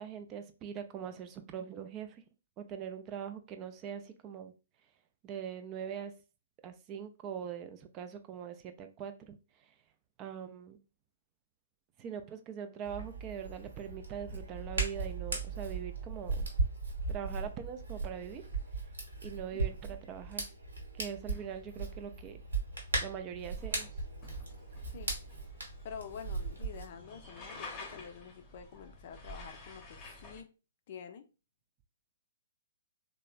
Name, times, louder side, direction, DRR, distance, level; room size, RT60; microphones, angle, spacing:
voice 1, 0.0-2.2 2.6-4.5 5.2-6.1 6.6-9.7 10.2-10.8 12.0-16.5 17.1-18.4 19.2-20.5 20.9-22.4 23.0-24.0, right 8 dB, 25° right, 8 dB, 0.3 m, -42 dB
Hands, 12.8-26.8, right 3 dB, 75° right, 1.0 m, -38 dB
sound 1, 21.3-30.4, left 2 dB, 25° left, 0.8 m, -51 dB
voice 2, 25.8-30.5 30.9-31.3, left 7 dB, 45° left, 7 dB, 0.4 m, -47 dB
3.1 x 2.1 x 2.3 m, 0.31 s
figure-of-eight pair, 125°, 0 cm